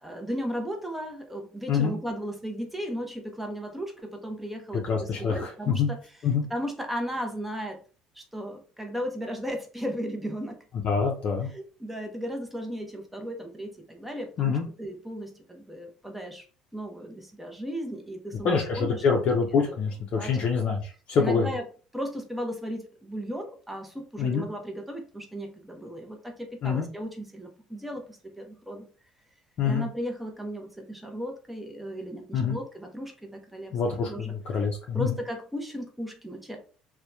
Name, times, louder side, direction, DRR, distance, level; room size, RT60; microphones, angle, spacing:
voice 1, 0.0-6.0 6.5-7.8 8.1-10.6 11.5-16.5 16.7-19.0 19.7-19.8 20.1-20.3 21.2-21.6 21.9-28.9 29.6-33.7 34.0-34.3 34.9-36.6, equal, 5° right, 3 dB, 0.6 m, -35 dB
voice 2, 4.8-5.9 6.2-6.4 10.8-11.5 14.4-14.7 18.4-21.5 24.2-24.5 26.6-26.9 29.6-29.9 32.3-32.6 33.7-35.2, left 5 dB, 55° left, 0 dB, 0.5 m, -26 dB
2.8 x 2.1 x 2.3 m, 0.39 s
cardioid pair, 105°, 2 cm